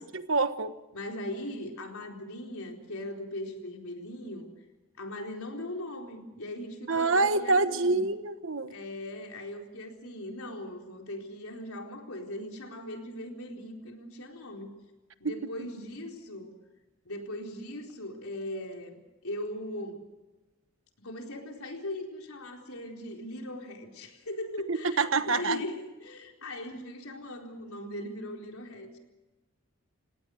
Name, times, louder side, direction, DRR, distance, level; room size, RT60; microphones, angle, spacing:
voice 1, 0.0-0.7 6.9-8.7 15.2-15.7 24.7-25.6, right 3 dB, 65° right, 11 dB, 1.3 m, -27 dB
voice 2, 0.9-4.5 5.0-8.1 8.7-14.7 15.2-16.5 17.1-19.0 19.2-20.0 21.0-29.0, left 1 dB, 85° left, 2 dB, 4.2 m, -39 dB
29.0 x 18.0 x 6.5 m, 1.1 s
head